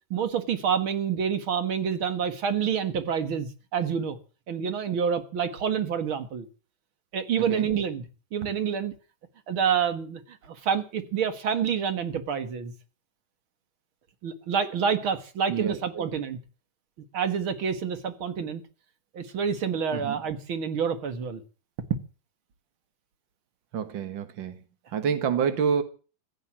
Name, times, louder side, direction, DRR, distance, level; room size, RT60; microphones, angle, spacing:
voice 1, 0.1-4.2 4.5-6.5 7.1-8.9 9.5-12.7 14.2-16.4 17.1-18.6 19.1-21.4, right 7 dB, 45° right, 1.8 m, -28 dB
voice 2, 15.5-16.0 19.9-20.2 23.7-24.6 24.9-25.8, right 7 dB, 80° right, 1.0 m, -27 dB
16.0 x 11.0 x 7.4 m
omnidirectional pair, 4.3 m